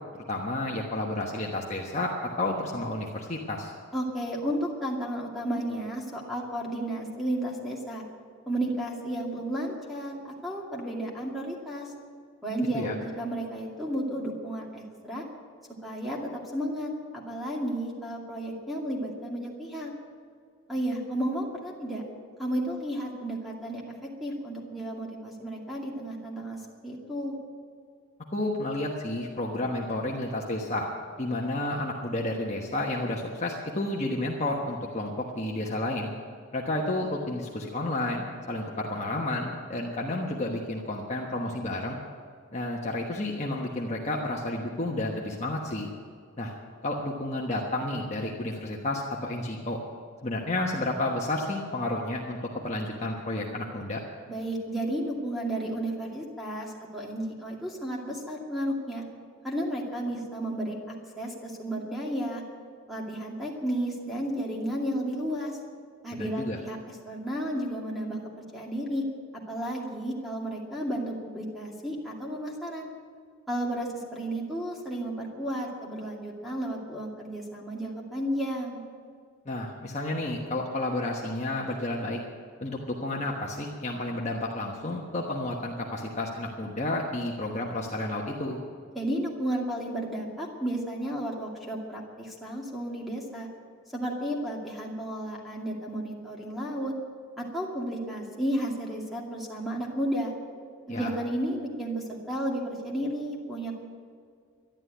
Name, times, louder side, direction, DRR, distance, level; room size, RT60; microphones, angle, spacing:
voice 1, 0.3-3.7 12.7-12.9 28.3-30.9 31.2-36.1 36.5-42.0 42.5-45.9 46.4-46.5 46.8-49.8 50.2-54.0 66.2-66.6 79.4-82.2 82.6-88.6 100.9-101.1, left 1 dB, 30° left, -2 dB, 1.2 m, -31 dB
voice 2, 3.9-8.0 8.5-11.9 12.4-15.2 15.8-19.9 20.7-22.0 22.4-23.9 24.2-27.3 54.3-59.0 59.4-62.4 62.9-65.6 66.0-69.0 69.3-72.9 73.5-78.8 88.9-93.5 93.9-96.9 97.4-100.3 100.9-103.7, right 1 dB, ahead, -2 dB, 2.3 m, -33 dB
12.0 x 11.5 x 9.3 m, 2.1 s
head